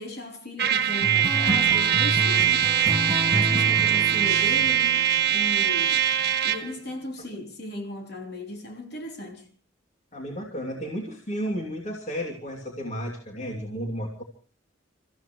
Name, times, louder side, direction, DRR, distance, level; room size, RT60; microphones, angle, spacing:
voice 1, 0.0-2.8 3.3-6.1 6.4-9.5, left 1 dB, 55° left, 3.8 m, -37 dB
Trumpet, 0.6-6.7, right 10 dB, 50° right, 1.5 m, -22 dB
sound 1, 1.0-5.9, equal, 15° right, 0.9 m, -30 dB
voice 2, 10.1-14.2, equal, 35° left, 2.8 m, -33 dB
30.0 x 14.5 x 3.1 m
head